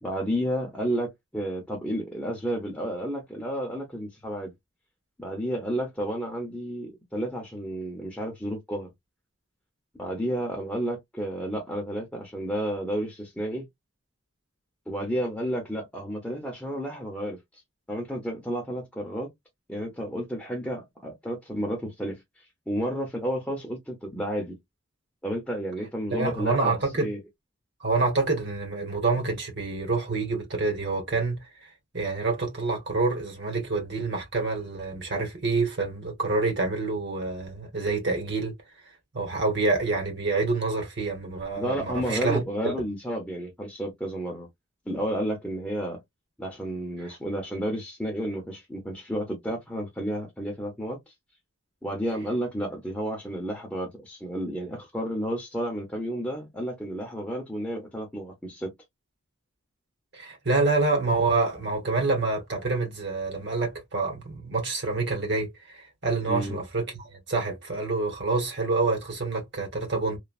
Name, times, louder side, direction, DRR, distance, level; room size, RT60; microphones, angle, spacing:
voice 1, 0.0-4.5 5.2-8.9 10.0-13.7 14.9-17.6 17.9-19.3 19.7-24.6 25.2-27.2 41.5-44.5 44.9-46.0 46.4-51.1 51.8-58.7 66.3-66.6, equal, 5° left, 0.7 m, -31 dB
voice 2, 26.1-27.1 27.8-38.5 39.1-42.4 60.1-70.2, right 3 dB, 55° right, 1.2 m, -27 dB
3.1 x 2.2 x 2.4 m
head